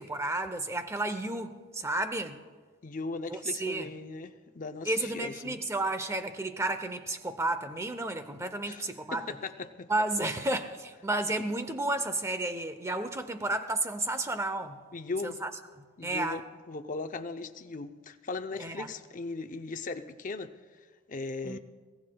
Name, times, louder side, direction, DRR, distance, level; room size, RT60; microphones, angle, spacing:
voice 1, 0.0-2.4 3.3-3.9 4.9-9.3 9.9-14.8 15.2-15.5 16.0-16.4 18.6-18.9 21.4-21.6, right 2 dB, 15° right, 0.7 m, -32 dB
voice 2, 2.8-5.6 8.6-9.9 10.2-10.4 14.9-15.4 16.0-16.4 16.7-20.5 21.1-21.6, left 3 dB, 40° left, 0.6 m, -38 dB
23.0 x 17.5 x 2.3 m
head